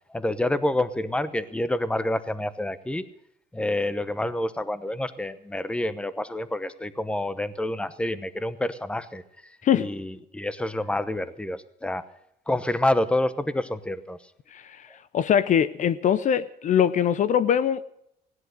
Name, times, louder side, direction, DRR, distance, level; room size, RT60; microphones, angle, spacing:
voice 1, 0.1-3.0 3.5-12.0 12.5-14.2, left 1 dB, 5° left, 15 dB, 0.9 m, -28 dB
voice 2, 14.5-14.9 15.1-17.8, left 9 dB, 50° left, 16 dB, 0.6 m, -22 dB
16.5 x 11.0 x 6.6 m, 0.77 s
cardioid pair, 110°, 17 cm